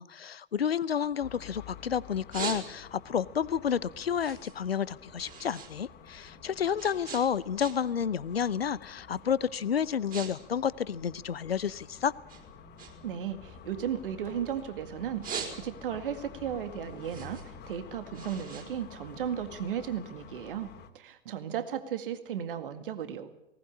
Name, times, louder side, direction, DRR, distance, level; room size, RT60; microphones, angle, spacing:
voice 1, 0.0-12.1, left 8 dB, 75° left, 20 dB, 0.8 m, -30 dB
sound 1, 0.6-1.7 2.1-3.1 3.5-5.7 6.0-8.0 8.3-8.7 9.3-9.5 9.8-10.3 10.6-11.8 12.3-14.6 15.0-16.0 16.4-19.6, right 7 dB, 30° right, 4.9 m, -42 dB
sound 2, 1.2-20.9, left 6 dB, 35° left, 2.4 m, -50 dB
voice 2, 13.0-20.7 20.9-23.3, right 9 dB, 60° right, 10 dB, 2.1 m, -35 dB
19.5 x 19.0 x 8.6 m, 0.89 s
figure-of-eight pair, 90°, 30 cm